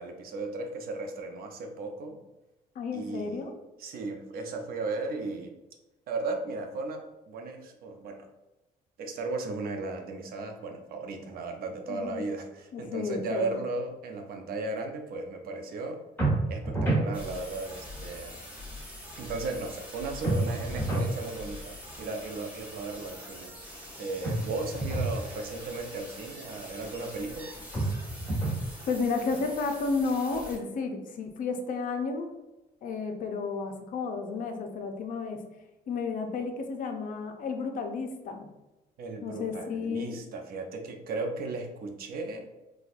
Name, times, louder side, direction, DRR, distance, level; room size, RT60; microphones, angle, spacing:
voice 1, 0.0-2.2 2.9-3.5 3.8-5.5 6.1-8.2 9.0-16.0 16.5-18.4 19.2-27.5 39.0-42.5, right 3 dB, 60° right, 4 dB, 0.6 m, -36 dB
voice 2, 2.8-3.5 11.9-12.3 12.7-13.6 28.9-32.3 32.8-35.4 35.9-38.5 39.2-40.2, left 4 dB, 55° left, 5 dB, 0.5 m, -32 dB
sound 1, 16.2-17.1 20.2-21.1 24.2-25.1 27.7-28.7, right 2 dB, 10° left, 1.4 m, -28 dB
sound 2, 17.1-30.6, left 1 dB, 10° right, 1.3 m, -44 dB
4.2 x 2.3 x 2.4 m, 1.0 s
cardioid pair, 110°, 17 cm